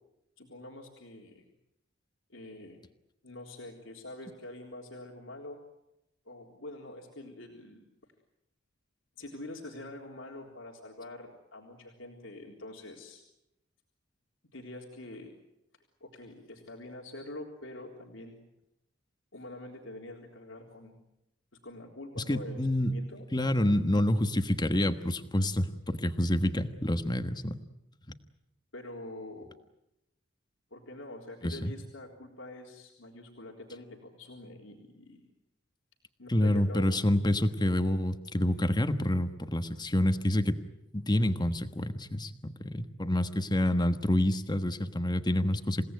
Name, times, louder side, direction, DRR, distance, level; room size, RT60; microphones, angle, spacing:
voice 1, 0.4-1.5 2.3-2.8 3.2-5.6 6.2-7.8 9.2-13.2 14.5-15.3 16.0-18.4 19.3-21.0 21.6-23.3 28.7-29.5 30.7-35.2 36.2-37.0, left 1 dB, 90° left, 0 dB, 3.8 m, -45 dB
voice 2, 22.2-22.9 23.3-27.6 31.4-31.7 36.3-40.6 40.9-45.8, left 1 dB, 20° left, 9 dB, 1.3 m, -28 dB
28.0 x 17.5 x 9.3 m, 0.88 s
head